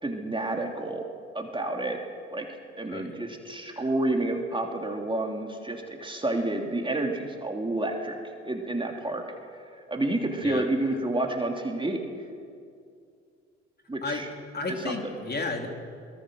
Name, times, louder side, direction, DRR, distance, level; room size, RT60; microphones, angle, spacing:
voice 1, 0.0-1.1 1.3-2.0 2.3-2.5 2.8-8.2 8.4-9.2 9.9-12.0 13.9-14.3 14.7-15.0, right 2 dB, 15° right, 2 dB, 3.0 m, -29 dB
voice 2, 14.5-15.7, left 3 dB, 30° left, 3 dB, 3.4 m, -33 dB
23.5 x 21.5 x 6.4 m, 2.3 s
hypercardioid pair, 55°, 35 cm